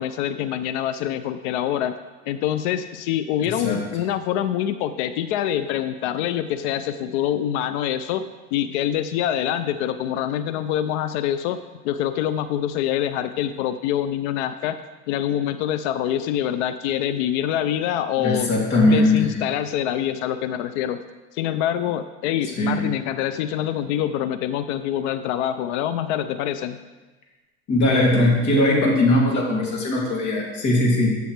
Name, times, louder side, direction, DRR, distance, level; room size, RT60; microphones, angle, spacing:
voice 1, 0.0-1.9 2.3-8.2 8.5-14.8 15.1-18.5 18.8-21.0 21.3-26.8, left 10 dB, 80° left, 11 dB, 0.5 m, -25 dB
voice 2, 18.2-19.3 22.6-22.8 27.7-31.2, left 1 dB, 55° left, -2 dB, 2.7 m, -19 dB
11.5 x 6.9 x 3.3 m, 1.2 s
supercardioid pair, 90°, 34 cm